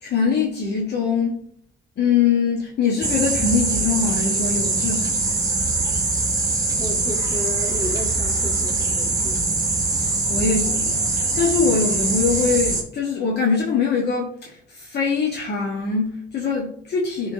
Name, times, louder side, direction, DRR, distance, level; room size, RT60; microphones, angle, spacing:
voice 1, 0.0-1.4 2.0-5.4 10.3-17.3, left 5 dB, 55° left, -1 dB, 1.3 m, -23 dB
sound 1, 3.0-12.8, right 3 dB, 20° right, 2.0 m, -22 dB
voice 2, 6.8-9.6, left 1 dB, 25° left, -3 dB, 2.6 m, -32 dB
10.5 x 3.6 x 2.7 m, 0.64 s
cardioid pair, 90°, 20 cm